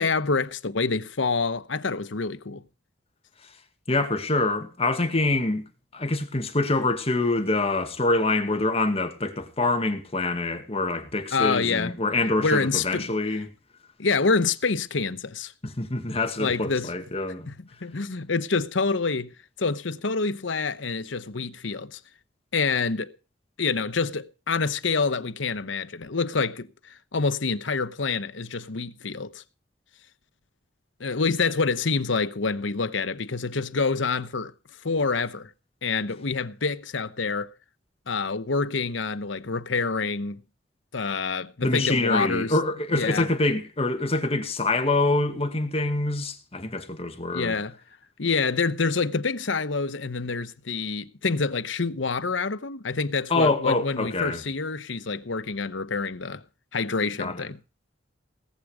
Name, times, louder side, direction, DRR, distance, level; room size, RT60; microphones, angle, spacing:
voice 1, 0.0-2.6 11.3-11.9 12.4-13.1 14.0-15.5 16.4-16.9 17.5-19.3 19.6-22.0 22.5-23.1 23.6-29.4 31.0-34.5 34.8-35.5 35.8-37.5 38.1-40.4 40.9-42.5 42.9-43.3 47.3-47.8 48.2-56.4 56.7-57.6, left 4 dB, 85° left, 1.0 m, -27 dB
voice 2, 3.9-5.6 5.9-13.5 15.6-17.5 41.6-47.5 53.3-54.4 57.2-57.4, left 2 dB, 35° left, 2.0 m, -25 dB
18.5 x 8.4 x 5.0 m
head